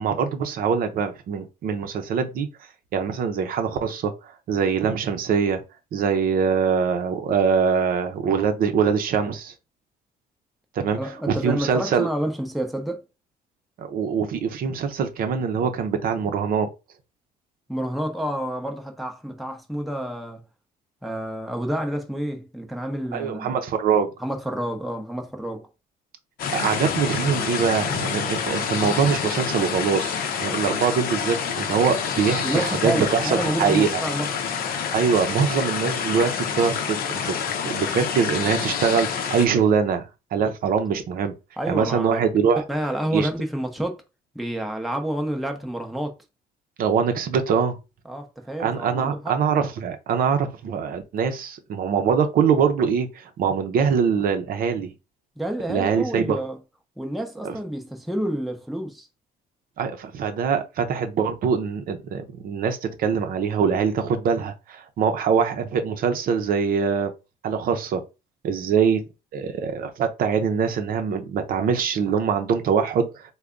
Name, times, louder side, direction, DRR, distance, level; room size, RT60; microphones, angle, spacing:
voice 1, 0.0-2.5 2.9-4.1 4.5-5.6 5.9-9.5 10.8-11.0 11.3-12.1 13.8-16.7 23.1-24.1 26.5-33.9 34.9-37.3 37.6-40.1 40.3-41.3 41.7-42.6 43.1-43.3 46.8-47.8 48.6-54.9 55.7-56.4 57.4-57.5 59.8-67.1 67.4-68.0 68.4-69.0 69.3-73.2, right 6 dB, 60° right, 0.7 m, -23 dB
voice 2, 11.0-13.0 17.7-20.4 21.0-23.5 24.2-25.7 32.4-34.5 41.6-42.2 42.7-44.0 44.3-46.1 48.1-49.4 55.4-56.6 57.0-59.1, right 1 dB, ahead, 0.7 m, -29 dB
sound 1, 26.4-39.5, left 7 dB, 60° left, 0.7 m, -27 dB
3.3 x 2.2 x 3.7 m
cardioid pair, 110°, 17 cm